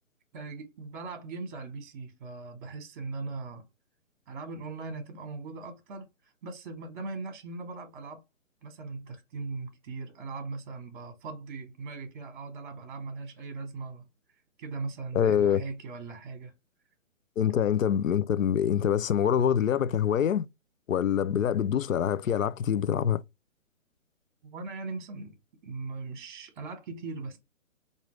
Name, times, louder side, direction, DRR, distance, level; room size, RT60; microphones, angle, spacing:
voice 1, 0.3-3.7 4.3-6.1 6.4-8.2 8.6-14.0 14.6-16.5 24.4-25.3 25.6-27.4, right 3 dB, 35° right, 1.1 m, -39 dB
voice 2, 15.1-15.6 17.4-20.5 20.9-23.2, left 9 dB, 75° left, 0.6 m, -25 dB
4.9 x 2.6 x 3.0 m
figure-of-eight pair, 135°, 40 cm